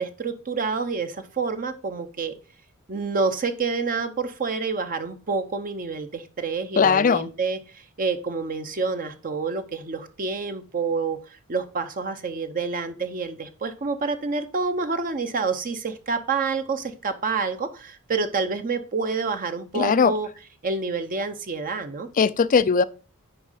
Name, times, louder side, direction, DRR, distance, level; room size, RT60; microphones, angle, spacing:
voice 1, 0.0-2.3 2.9-20.3 20.6-22.1, right 4 dB, 40° right, 0.7 m, -28 dB
voice 2, 6.8-7.3 19.7-20.1 22.2-22.8, left 5 dB, 35° left, 0.4 m, -19 dB
10.0 x 3.6 x 5.6 m
head